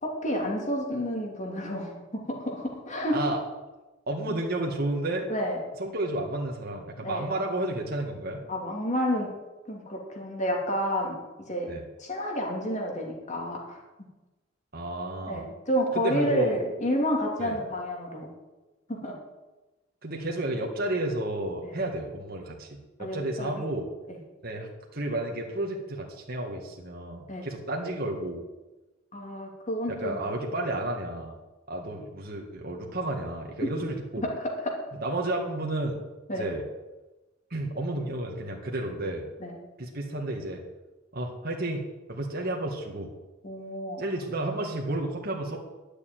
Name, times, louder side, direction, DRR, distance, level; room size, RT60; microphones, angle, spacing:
voice 1, 0.0-3.2 5.3-5.6 7.0-7.3 8.5-9.3 9.7-11.2 11.5-11.7 12.0-13.8 15.2-18.3 18.9-19.1 21.6-21.8 23.0-23.7 24.1-24.2 27.3-27.5 29.1-30.2 33.6-33.7 34.2-34.7 36.3-36.4 39.4-39.6 43.4-44.0, equal, 40° left, 0 dB, 3.0 m, -30 dB
voice 2, 4.1-5.3 5.8-8.4 11.7-11.8 14.7-15.5 15.9-16.6 17.4-17.6 20.0-23.9 24.4-28.4 29.9-31.4 31.7-34.3 35.0-36.0 36.4-36.6 37.5-39.3 39.8-40.6 41.1-41.8 42.1-43.1 44.0-45.6, right 1 dB, 50° right, 1 dB, 1.9 m, -31 dB
11.5 x 6.8 x 9.4 m, 1.1 s
head